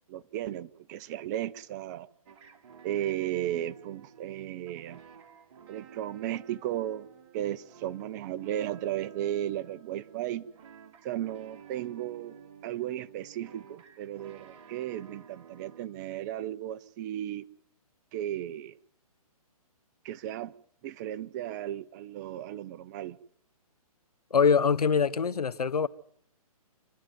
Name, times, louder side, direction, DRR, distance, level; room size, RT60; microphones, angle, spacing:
voice 1, 0.1-2.1 2.8-5.0 5.7-7.1 7.3-10.5 11.0-12.4 12.6-17.5 18.1-18.7 20.0-20.5 20.8-23.2, right 12 dB, 30° right, 0.8 m, -35 dB
sound 1, 2.3-15.9, right 7 dB, 50° right, 2.6 m, -53 dB
voice 2, 24.3-25.9, left 6 dB, 85° left, 1.1 m, -24 dB
27.0 x 12.0 x 9.3 m
hypercardioid pair, 145°, 19 cm